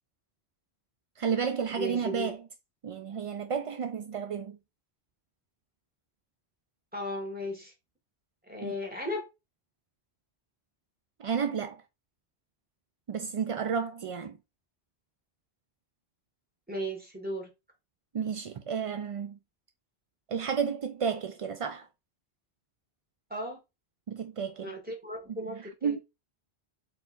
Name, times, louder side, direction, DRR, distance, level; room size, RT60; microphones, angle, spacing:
voice 1, 1.2-2.4 2.8-4.6 8.6-8.7 11.2-11.8 13.1-14.4 18.1-19.4 20.3-21.9 24.1-24.7 25.3-25.4 25.8-26.0, right 6 dB, 60° right, 0.3 m, -32 dB
voice 2, 1.8-2.3 6.9-7.7 8.4-9.3 16.7-17.5 23.3-23.6 24.6-26.0, equal, 10° right, 1.7 m, -36 dB
4.3 x 4.1 x 2.4 m
omnidirectional pair, 1.1 m